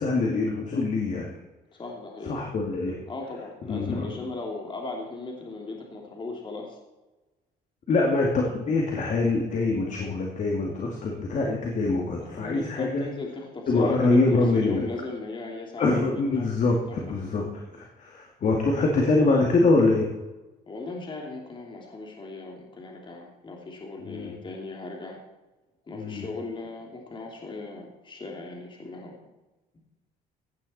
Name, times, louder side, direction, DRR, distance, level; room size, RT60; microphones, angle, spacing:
voice 1, 0.0-1.3 2.2-3.0 3.7-4.2 7.9-13.0 13.7-14.8 15.8-17.5 17.7-20.1 24.1-24.3 25.9-26.2, left 3 dB, 45° left, 0 dB, 2.4 m, -24 dB
voice 2, 1.8-2.5 3.1-6.8 12.2-16.0 16.3-16.5 16.9-17.0 20.7-25.2 25.9-29.2, left 3 dB, 30° left, 0 dB, 2.8 m, -37 dB
16.0 x 10.5 x 4.3 m, 1.1 s
cardioid pair, 110°, 17 cm